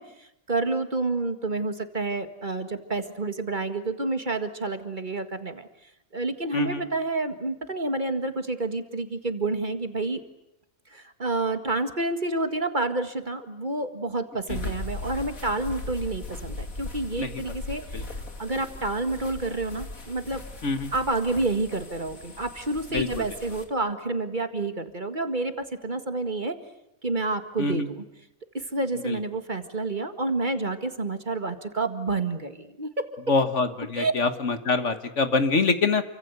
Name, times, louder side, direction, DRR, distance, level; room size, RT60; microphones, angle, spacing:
voice 1, 0.0-5.7 6.1-10.2 10.9-18.1 18.4-20.4 20.9-26.7 27.0-28.0 28.5-33.3 34.0-34.1, right 2 dB, 35° right, 8 dB, 2.0 m, -29 dB
sound 1, 14.5-23.6, left 2 dB, 85° left, 3.3 m, -38 dB
voice 2, 33.3-36.0, left 3 dB, 60° left, 9 dB, 1.9 m, -25 dB
29.0 x 25.0 x 8.2 m, 0.82 s
omnidirectional pair, 1.4 m